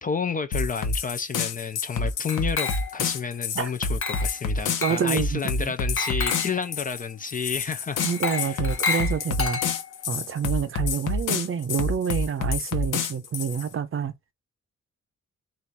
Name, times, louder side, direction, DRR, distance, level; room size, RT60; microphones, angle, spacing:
voice 1, 0.0-8.0 8.3-8.6, left 6 dB, 30° left, 0.4 m, -31 dB
sound 1, 0.5-13.7, left 4 dB, 75° left, 1.0 m, -28 dB
Glass, 2.3-3.1 4.0-4.4 4.8-5.1 6.0-6.6 8.0-10.0, left 5 dB, 45° left, 1.0 m, -30 dB
voice 2, 4.8-5.7 8.0-9.6 10.1-14.1, right 7 dB, 45° right, 0.6 m, -28 dB
4.1 x 2.5 x 4.6 m
wide cardioid pair, 165°, 30 cm